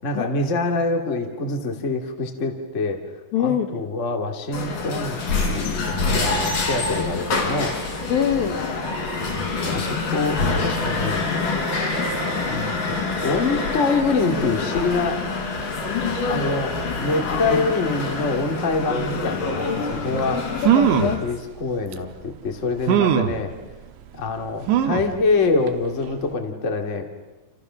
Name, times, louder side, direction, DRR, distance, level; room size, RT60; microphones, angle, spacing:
voice 1, 0.0-3.0 3.4-7.8 9.3-11.3 12.5-15.2 16.3-20.4 21.2-23.5 24.2-27.0, left 3 dB, 25° left, 4 dB, 2.0 m, -25 dB
voice 2, 3.3-3.9 8.1-8.7 20.3-21.2, left 9 dB, 65° left, 6 dB, 2.6 m, -24 dB
sound 1, 4.5-21.2, left 3 dB, 50° left, 5.7 m, -26 dB
sound 2, 20.2-20.3 20.6-21.2 21.9-22.0 22.9-23.4 24.7-25.2 25.7-25.8 26.1-26.2, right 10 dB, 85° right, 3.5 m, -19 dB
29.5 x 29.0 x 6.4 m, 1.2 s
omnidirectional pair, 5.1 m